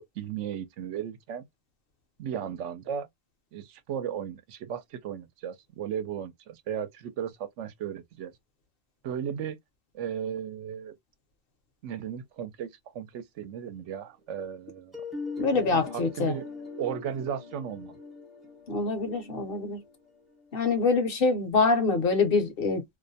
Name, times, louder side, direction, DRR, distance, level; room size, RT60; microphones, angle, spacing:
voice 1, 0.0-1.5 2.2-3.1 3.5-8.3 9.0-9.6 9.9-10.9 11.8-15.0 15.9-16.5 16.8-18.0, right 8 dB, 80° right, 0.9 m, -35 dB
sound 1, 14.9-20.7, left 4 dB, ahead, 0.5 m, -41 dB
voice 2, 15.4-16.3 18.7-19.8 20.5-22.8, left 4 dB, 55° left, 0.8 m, -25 dB
2.4 x 2.1 x 2.5 m
omnidirectional pair, 1.2 m